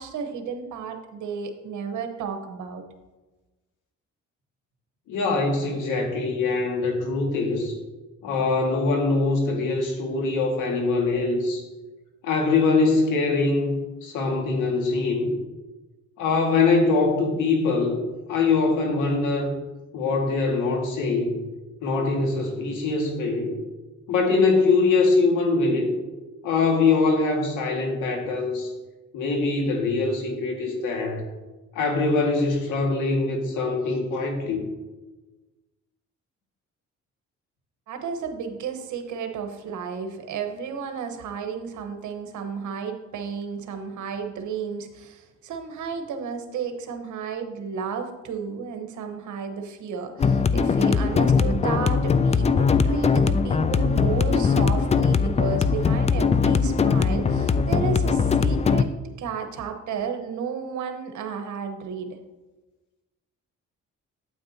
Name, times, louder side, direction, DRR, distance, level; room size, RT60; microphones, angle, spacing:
voice 1, 0.0-2.8 37.9-62.2, right 6 dB, 75° right, 5 dB, 1.2 m, -33 dB
voice 2, 5.1-7.7 8.2-11.6 12.2-15.3 16.2-18.0 18.3-19.5 19.9-21.4 21.8-23.5 24.1-25.9 26.4-28.7 29.1-31.2 31.8-34.6, left 3 dB, 85° left, 1 dB, 1.9 m, -23 dB
sound 1, 50.2-58.8, left 5 dB, 25° left, 0.3 m, -21 dB
8.7 x 8.5 x 2.8 m, 1.1 s
cardioid pair, 90°, 30 cm